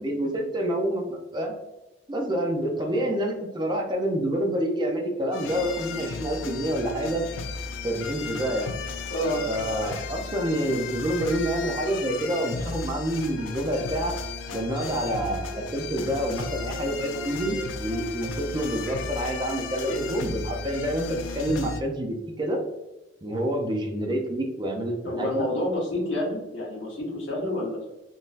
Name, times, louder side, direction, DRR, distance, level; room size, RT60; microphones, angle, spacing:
voice 1, 0.0-1.5 2.1-7.2 7.8-8.7 9.5-14.2 14.5-22.6 23.2-25.5, right 1 dB, 25° right, 1 dB, 0.5 m, -28 dB
voice 2, 2.8-3.2 9.1-9.5 25.0-27.9, left 1 dB, 70° left, -4 dB, 1.3 m, -29 dB
sound 1, 5.3-21.8, left 5 dB, 90° left, 0.4 m, -35 dB
sound 2, 12.3-19.6, left 1 dB, 85° right, 1.4 m, -43 dB
3.8 x 2.6 x 2.5 m, 0.99 s
head